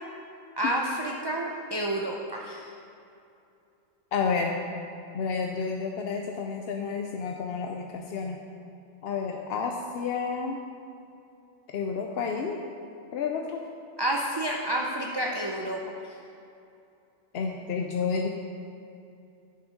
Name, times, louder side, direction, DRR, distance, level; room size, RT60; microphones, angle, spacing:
voice 1, 0.6-2.7 14.0-15.8, right 1 dB, 35° right, -1 dB, 0.4 m, -29 dB
voice 2, 4.1-4.6 5.1-8.4 9.0-10.6 11.7-12.6 13.1-13.6 17.3-18.3, left 5 dB, 60° left, 2 dB, 0.7 m, -30 dB
9.6 x 6.2 x 5.1 m, 2.6 s
omnidirectional pair, 1.3 m